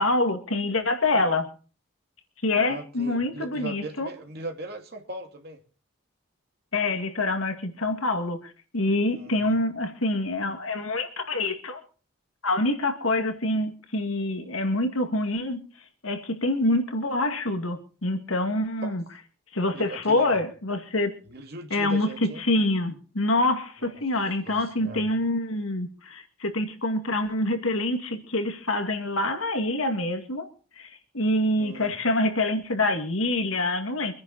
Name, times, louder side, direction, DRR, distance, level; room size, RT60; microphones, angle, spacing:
voice 1, 0.0-1.5 2.4-4.1 6.7-11.8 12.4-15.6 16.0-19.0 19.5-21.2 21.7-30.5 30.8-34.1, left 2 dB, 85° left, 2.2 m, -26 dB
voice 2, 2.6-5.6 9.0-9.6 18.8-19.0 19.7-20.4 21.3-22.4 23.8-23.9 24.4-25.1 31.6-32.0, right 2 dB, 50° right, 2.6 m, -39 dB
25.0 x 10.0 x 4.2 m
head